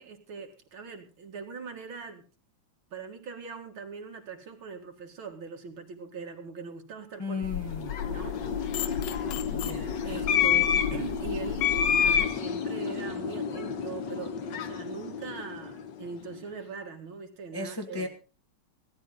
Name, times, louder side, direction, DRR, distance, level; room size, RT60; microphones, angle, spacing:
voice 1, 0.0-2.3 2.9-7.4 8.0-8.4 9.4-9.6 10.0-18.1, right 5 dB, 65° right, 4 dB, 2.7 m, -41 dB
voice 2, 7.2-8.0 9.5-10.0 17.5-18.1, left 3 dB, 15° left, 3 dB, 1.1 m, -35 dB
sound 1, 7.4-12.3, left 10 dB, 75° left, 1.7 m, -36 dB
sound 2, 7.6-16.1, left 7 dB, 60° left, 1.6 m, -29 dB
17.0 x 13.0 x 3.9 m, 0.33 s
omnidirectional pair, 2.4 m